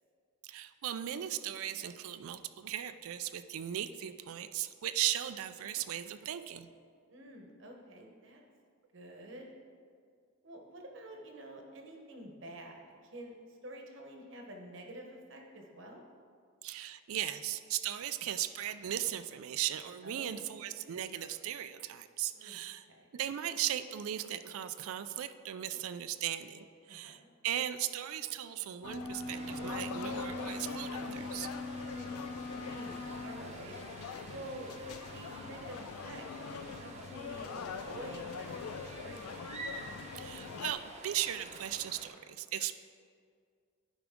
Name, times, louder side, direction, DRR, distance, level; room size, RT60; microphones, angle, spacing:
voice 1, 0.4-6.7 16.6-22.9 23.1-31.5 40.1-42.7, right 11 dB, 75° right, 11 dB, 0.3 m, -37 dB
voice 2, 7.1-8.4 8.9-9.5 10.4-16.0 20.0-20.5 22.3-22.6 22.9-23.1 26.9-27.3 31.7-33.8 34.3-39.5, right 1 dB, 55° right, 2 dB, 1.0 m, -49 dB
sound 1, 28.8-40.7, left 6 dB, 85° left, 0.4 m, -44 dB
sound 2, 28.8-33.4, left 2 dB, 15° left, 0.4 m, -41 dB
sound 3, 29.2-42.1, right 2 dB, 30° right, 0.7 m, -49 dB
11.0 x 5.0 x 3.6 m, 2.2 s
head